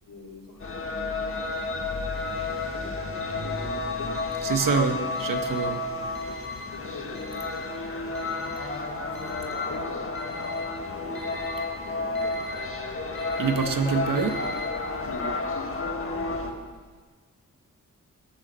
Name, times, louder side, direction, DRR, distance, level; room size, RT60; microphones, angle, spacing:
voice 1, 0.0-4.2 6.2-8.6 9.1-10.1 10.5-12.5 15.0-16.7, left 2 dB, 80° left, -1 dB, 3.4 m, -43 dB
sound 1, 0.6-16.5, left 3 dB, 40° left, 1.7 m, -31 dB
Alarm, 1.3-1.6 2.1-2.6 3.1-3.6 4.1-4.6 5.1-5.6 6.1-6.6 7.1-7.6 8.1-8.6 9.1-9.6 10.1-10.6 11.1-11.6 12.1-12.6 13.1-13.6 14.1-14.6, left 1 dB, 5° left, 5.1 m, -45 dB
voice 2, 4.4-5.8 13.4-14.4, right 5 dB, 80° right, 6 dB, 1.5 m, -25 dB
20.5 x 7.4 x 7.7 m, 1.4 s
wide cardioid pair, 125°, 32 cm